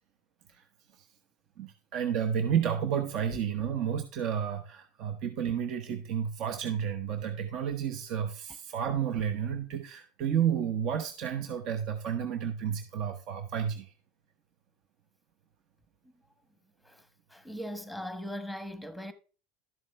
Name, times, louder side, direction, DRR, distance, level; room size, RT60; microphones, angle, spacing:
voice 1, 1.6-13.9, right 8 dB, 55° right, 1.0 m, -31 dB
voice 2, 17.3-19.1, equal, ahead, 1.1 m, -39 dB
12.0 x 7.3 x 3.4 m
supercardioid pair, 115°, 0 cm